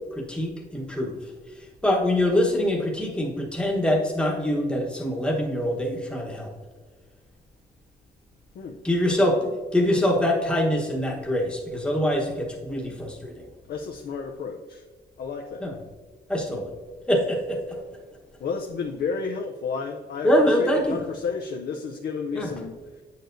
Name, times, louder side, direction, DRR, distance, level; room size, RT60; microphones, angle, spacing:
voice 1, 0.1-1.2 1.8-6.5 8.8-13.4 15.6-15.8 16.3-16.7 17.1-17.8 20.2-21.0 22.3-22.5, left 1 dB, 5° left, -1 dB, 1.1 m, -24 dB
voice 2, 13.7-14.8 15.2-15.6 18.4-23.0, left 5 dB, 60° left, 1 dB, 0.5 m, -32 dB
9.1 x 6.7 x 2.6 m, 1.4 s
wide cardioid pair, 140°, 18 cm